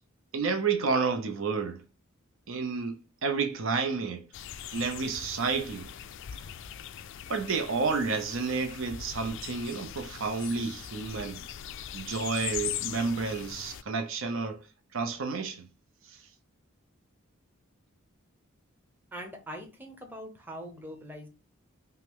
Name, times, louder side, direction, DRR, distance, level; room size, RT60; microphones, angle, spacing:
voice 1, 0.3-1.8 2.5-4.2 4.7-5.9 7.3-11.4 11.9-14.6 14.9-15.7, right 4 dB, 65° right, 0.6 m, -30 dB
sound 1, 4.3-13.8, left 10 dB, 60° left, 0.3 m, -40 dB
voice 2, 19.1-21.3, equal, 10° right, 0.8 m, -42 dB
5.5 x 2.1 x 3.6 m
head